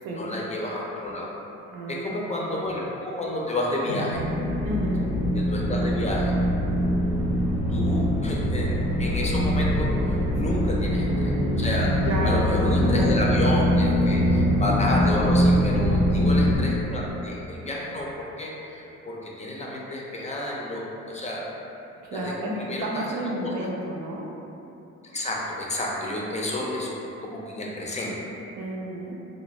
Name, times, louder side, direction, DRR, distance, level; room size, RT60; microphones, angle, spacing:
voice 1, 0.1-1.3 1.9-4.2 5.4-6.3 7.7-11.3 11.6-11.9 12.2-21.4 22.1-22.3 22.7-23.2 23.4-23.5 25.0-26.9 27.2-28.2, left 1 dB, 25° left, -3 dB, 0.4 m, -30 dB
voice 2, 1.7-2.3 4.6-5.1 10.5-10.6 12.0-13.2 14.1-14.6 15.8-16.4 22.0-24.3 28.6-29.2, right 1 dB, 80° right, -3 dB, 0.6 m, -32 dB
sound 1, 3.9-11.1, equal, 80° left, 0.6 m, -40 dB
sound 2, 4.1-16.6, equal, 20° right, 0.7 m, -23 dB
2.5 x 2.1 x 3.1 m, 2.9 s
cardioid pair, 100°, 30 cm